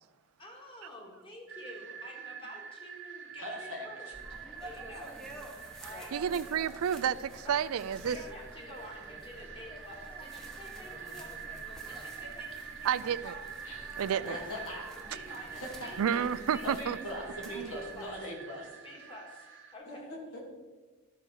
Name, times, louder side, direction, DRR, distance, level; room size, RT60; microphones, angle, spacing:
voice 1, 0.4-4.1 4.6-5.1 5.8-6.2 7.4-7.6 8.0-11.3 11.8-13.5 14.1-16.8 17.1-18.1 18.5-20.1, left 1 dB, 25° left, -1 dB, 2.0 m, -49 dB
sound 1, 1.5-19.7, right 7 dB, 55° right, 0.9 m, -46 dB
voice 2, 3.4-4.1 12.0-12.2 13.6-14.0 14.2-14.8 15.3-15.9 16.6-18.8 19.9-20.4, equal, 70° left, -1 dB, 2.6 m, -41 dB
sound 2, 4.1-18.1, right 1 dB, ahead, 1.0 m, -49 dB
voice 3, 6.1-8.2 12.8-13.3 14.0-14.4 16.0-17.0 17.6-17.7, right 8 dB, 70° right, 16 dB, 0.4 m, -30 dB
12.0 x 4.6 x 6.3 m, 1.3 s
head